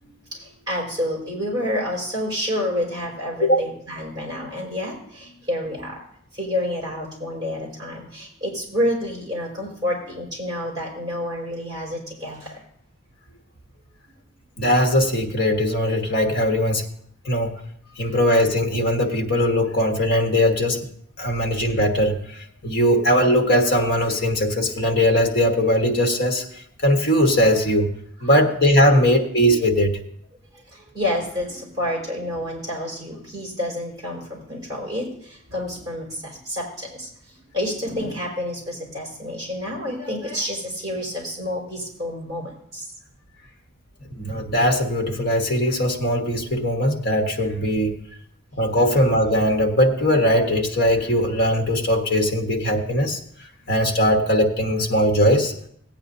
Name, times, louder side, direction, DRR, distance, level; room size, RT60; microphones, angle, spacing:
voice 1, 0.0-6.0 6.3-12.6 18.0-18.2 30.5-42.9, left 1 dB, 20° right, -3 dB, 4.4 m, -29 dB
voice 2, 14.6-16.8 17.2-17.5 18.0-20.9 21.2-27.9 28.2-30.0 44.2-48.0 48.6-53.2 53.7-55.5, equal, 50° left, 3 dB, 1.3 m, -20 dB
17.5 x 9.0 x 2.7 m, 0.67 s
head